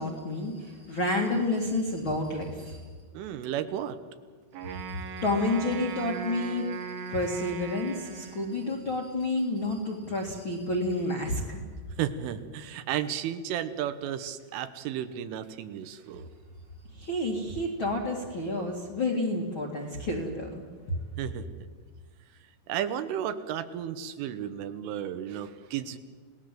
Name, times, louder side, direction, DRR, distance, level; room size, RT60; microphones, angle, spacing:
voice 1, 0.0-2.8 4.7-6.8 7.1-11.6 16.9-20.6, left 2 dB, 45° left, 0 dB, 1.7 m, -30 dB
voice 2, 3.2-4.0 12.0-16.3 21.2-21.5 22.7-26.0, right 10 dB, 80° right, 10 dB, 3.5 m, -33 dB
Wind instrument woodwind instrument, 4.5-8.9, right 7 dB, 60° right, 2.9 m, -39 dB
29.5 x 18.5 x 7.6 m, 1.5 s
omnidirectional pair, 5.8 m